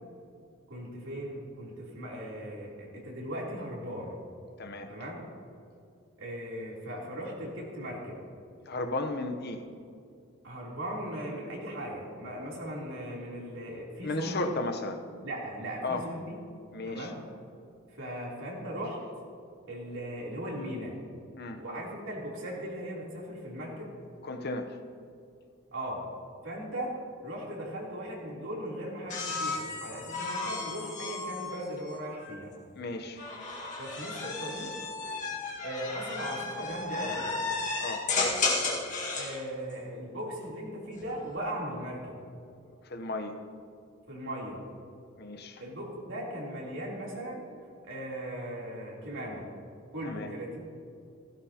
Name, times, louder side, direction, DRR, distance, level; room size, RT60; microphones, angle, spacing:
voice 1, 0.7-4.2 4.9-5.2 6.2-8.2 10.4-14.5 15.2-16.4 16.9-17.2 18.0-19.0 19.7-20.9 21.6-23.9 25.7-26.1 26.4-27.0 27.2-32.5 33.8-34.7 35.6-37.3 39.1-42.2 44.1-44.6 45.6-47.4 47.8-49.4 49.9-50.6, equal, 70° right, -4 dB, 3.3 m, -38 dB
voice 2, 4.6-4.9 8.7-9.6 14.0-15.0 15.8-16.1 16.7-17.1 21.4-21.6 24.2-24.8 32.7-33.2 37.8-38.5 42.9-43.4 45.2-45.6 50.0-50.3, left 2 dB, 55° left, 6 dB, 0.9 m, -34 dB
sound 1, 29.1-32.4 33.2-39.4 40.8-41.4, left 3 dB, 40° left, 1.8 m, -34 dB
16.0 x 16.0 x 2.9 m, 2.5 s
head